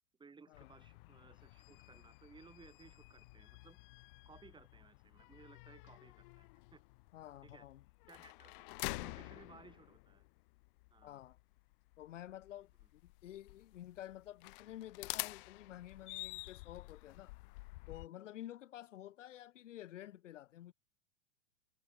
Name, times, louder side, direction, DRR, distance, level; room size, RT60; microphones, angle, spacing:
voice 1, 0.2-3.8 4.3-6.8 7.4-7.7 8.1-10.3 10.9-11.2, right 5 dB, 10° right, 1.8 m, -61 dB
sound 1, 0.5-18.1, left 25 dB, 40° left, 0.6 m, -49 dB
voice 2, 7.1-7.8 11.0-11.4 12.0-17.3 17.9-20.7, left 12 dB, 65° left, 1.0 m, -51 dB
figure-of-eight pair, 90°, 40 cm